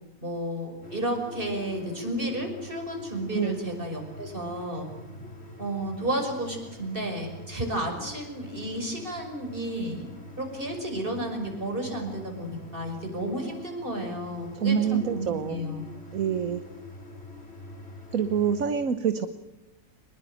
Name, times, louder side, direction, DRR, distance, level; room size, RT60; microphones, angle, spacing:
voice 1, 0.2-4.9 5.6-10.1 10.4-15.8, right 1 dB, 30° right, 3 dB, 6.2 m, -32 dB
sound 1, 0.8-18.7, left 2 dB, 40° left, 3.9 m, -44 dB
voice 2, 14.6-15.6 16.1-16.6 18.1-19.3, right 7 dB, 60° right, 10 dB, 1.4 m, -26 dB
25.5 x 21.0 x 9.1 m, 1.0 s
omnidirectional pair, 1.7 m